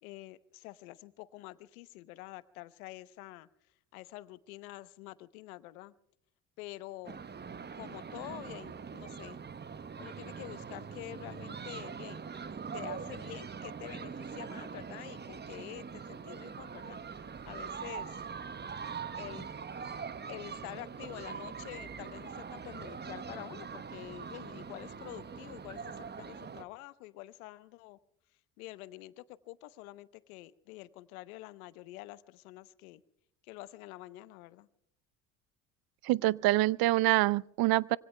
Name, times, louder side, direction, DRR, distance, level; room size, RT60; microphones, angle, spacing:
voice 1, 0.0-3.5 3.9-5.9 6.6-7.2 7.8-9.4 10.0-12.2 12.7-17.0 17.5-18.2 19.1-19.5 20.3-28.0 28.6-33.0 33.4-34.7, left 18 dB, 80° left, 0.9 m, -47 dB
sound 1, 7.0-26.6, right 6 dB, 25° right, 0.9 m, -43 dB
voice 2, 36.0-38.0, right 18 dB, 60° right, 0.6 m, -26 dB
25.5 x 24.0 x 2.2 m
hypercardioid pair, 60°, 42 cm